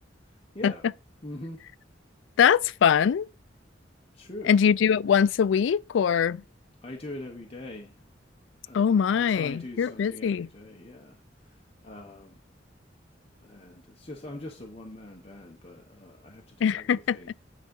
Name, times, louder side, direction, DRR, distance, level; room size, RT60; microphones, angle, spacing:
voice 1, 1.2-1.6 4.1-4.6 6.8-8.0 8.6-12.3 13.4-17.3, left 1 dB, 35° left, 1.1 m, -43 dB
voice 2, 2.4-3.3 4.5-6.4 8.7-10.5 16.6-17.2, left 7 dB, 80° left, 0.3 m, -22 dB
9.5 x 3.8 x 5.4 m
head